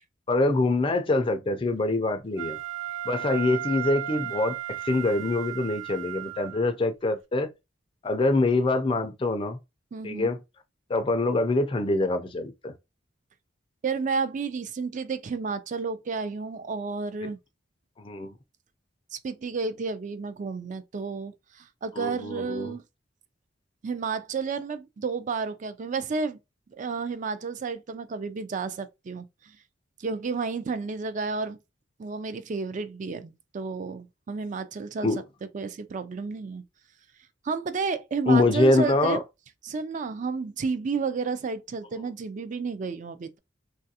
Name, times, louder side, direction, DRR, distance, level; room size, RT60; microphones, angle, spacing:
voice 1, 0.3-2.6 3.1-7.5 8.0-9.6 10.0-10.4 10.9-12.7 18.0-18.3 22.0-22.7 35.0-35.2 38.3-39.2, left 2 dB, 25° left, 0.4 m, -24 dB
Wind instrument woodwind instrument, 2.4-6.7, right 12 dB, 90° right, 0.7 m, -35 dB
voice 2, 9.9-10.3 13.8-17.4 19.1-22.8 23.8-26.4 26.8-29.6 30.0-31.6 32.0-35.1 35.5-36.6 37.4-39.2 39.6-43.4, right 4 dB, 40° right, 0.4 m, -31 dB
3.2 x 2.4 x 2.7 m
head